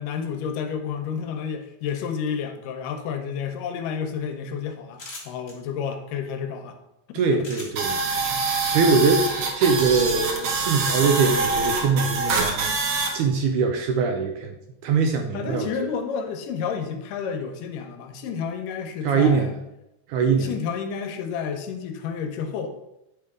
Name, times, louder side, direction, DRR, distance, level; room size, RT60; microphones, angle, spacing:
voice 1, 0.0-6.8 7.3-7.5 15.3-19.5 20.4-22.8, left 6 dB, 80° left, 6 dB, 2.2 m, -30 dB
sound 1, 4.9-5.5 7.4-7.9 9.9-10.3, left 3 dB, 45° left, 1.0 m, -39 dB
voice 2, 7.1-12.7 13.1-14.5 14.8-15.9 19.0-19.5 20.1-20.5, right 5 dB, 80° right, 5 dB, 1.8 m, -22 dB
sound 2, 7.8-13.1, right 3 dB, 65° right, 1.8 m, -25 dB
8.9 x 3.4 x 4.8 m, 0.88 s
omnidirectional pair, 3.9 m